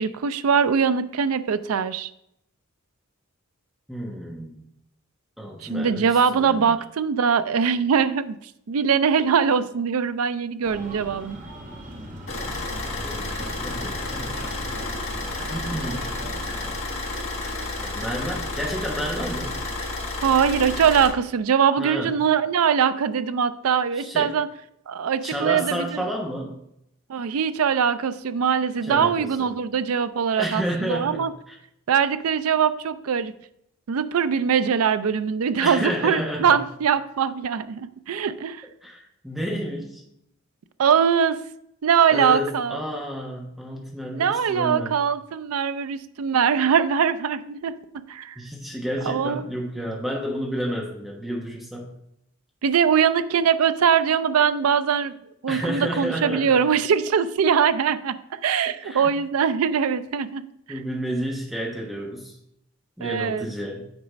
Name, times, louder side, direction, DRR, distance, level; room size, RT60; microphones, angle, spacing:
voice 1, 0.0-2.1 5.6-8.4 8.7-11.4 20.2-24.5 24.9-26.0 27.1-31.3 31.9-33.3 33.9-38.6 40.8-41.4 41.8-42.8 44.1-48.4 49.0-49.4 52.6-55.1 55.4-58.2 58.4-60.8 63.0-63.5, right 7 dB, 85° right, 13 dB, 0.4 m, -22 dB
voice 2, 3.9-4.6 5.4-6.8 12.9-14.6 15.5-16.1 17.8-19.6 21.8-22.2 23.9-24.3 25.2-26.6 28.8-29.5 30.4-31.5 35.6-36.6 38.8-40.0 42.1-44.9 48.4-51.9 55.5-56.6 58.8-59.1 60.7-62.3 63.0-63.9, equal, ahead, -2 dB, 1.2 m, -31 dB
Breathing, 10.6-16.8, right 1 dB, 35° right, 1.2 m, -40 dB
Car / Idling, 12.3-21.1, left 2 dB, 70° left, 1.6 m, -31 dB
8.0 x 4.1 x 5.0 m, 0.77 s
head